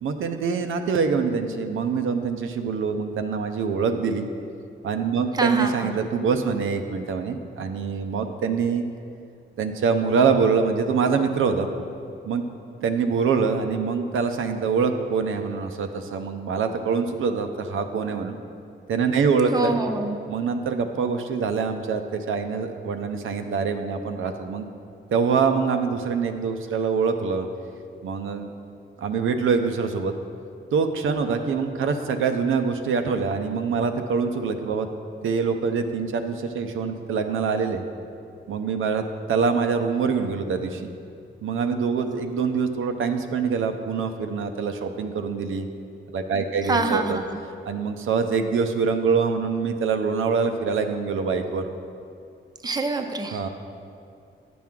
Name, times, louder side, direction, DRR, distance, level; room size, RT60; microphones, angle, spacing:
voice 1, 0.0-4.3 4.8-8.8 9.6-11.7 12.2-12.4 12.8-18.4 18.9-19.7 20.3-24.7 25.1-27.5 28.0-28.5 29.0-30.1 30.7-34.9 35.2-37.8 38.5-40.9 41.4-45.7 46.1-47.2 47.7-51.6 53.3-53.5, right 5 dB, 80° right, 6 dB, 0.6 m, -24 dB
voice 2, 5.3-5.9 19.5-20.2 46.7-47.4 52.6-53.4, right 3 dB, 20° right, 5 dB, 0.6 m, -25 dB
10.0 x 6.0 x 3.6 m, 2.4 s
cardioid pair, 95°, 20 cm